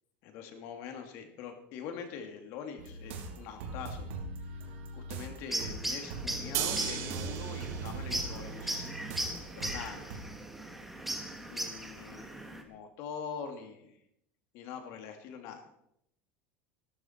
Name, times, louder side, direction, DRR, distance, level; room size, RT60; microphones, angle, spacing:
voice 1, 0.2-4.1 4.4-4.6 4.9-9.0 9.6-10.4 10.9-11.2 11.5-14.0 14.5-15.7, left 7 dB, 50° left, 5 dB, 2.5 m, -44 dB
sound 1, 2.8-10.2, right 3 dB, 90° right, 2.7 m, -41 dB
sound 2, 5.5-12.6, right 1 dB, 5° right, 1.4 m, -38 dB
sound 3, 6.5-12.6, right 11 dB, 50° right, 1.2 m, -40 dB
15.0 x 13.0 x 4.5 m, 0.76 s
supercardioid pair, 160°, 6 cm